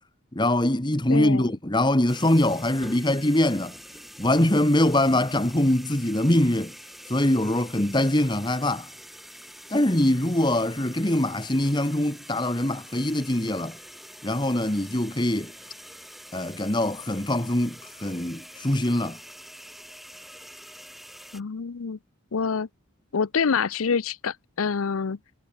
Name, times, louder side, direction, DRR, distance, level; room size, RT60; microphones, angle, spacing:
voice 1, 0.3-3.8 4.2-6.7 7.1-8.9 9.7-13.8 14.2-15.5 16.3-19.2, left 1 dB, 20° left, 1.4 m, -23 dB
voice 2, 1.1-1.5 21.3-22.0 22.3-22.7 23.1-25.2, left 5 dB, 75° left, 0.6 m, -26 dB
sound 1, 2.1-21.4, equal, ahead, 5.1 m, -45 dB
head